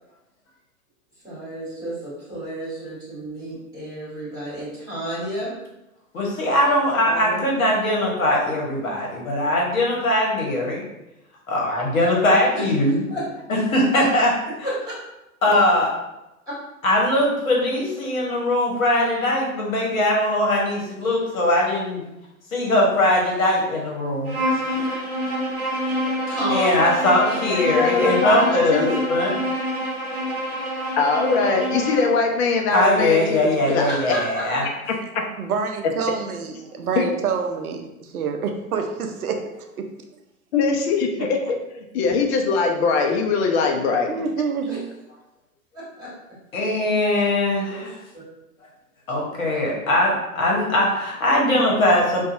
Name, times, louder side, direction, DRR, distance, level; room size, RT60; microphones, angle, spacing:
voice 1, 1.2-5.5 7.0-7.4 12.5-12.6 13.1-13.2 26.3-27.5 33.8-34.4 44.7-44.8 45.7-46.1 47.7-47.9 48.1-48.2, equal, 10° right, -8 dB, 1.5 m, -31 dB
voice 2, 6.1-10.9 11.5-13.0 13.5-14.3 15.4-15.9 16.8-22.0 22.5-24.4 26.5-29.4 32.7-34.6 46.5-47.9 49.1-52.2, left 1 dB, 65° left, -2 dB, 1.0 m, -21 dB
Bowed string instrument, 24.3-32.2, equal, 35° right, 0.7 m, -26 dB
voice 3, 27.6-29.0 31.0-33.9 34.9-35.0 37.0-37.1 40.5-41.6 41.9-44.1, left 4 dB, 50° left, 2 dB, 0.5 m, -21 dB
voice 4, 35.1-39.4 39.8-39.9 44.1-44.9, right 5 dB, 80° right, 4 dB, 0.5 m, -27 dB
2.6 x 2.2 x 2.6 m, 0.91 s
figure-of-eight pair, 105°, 44 cm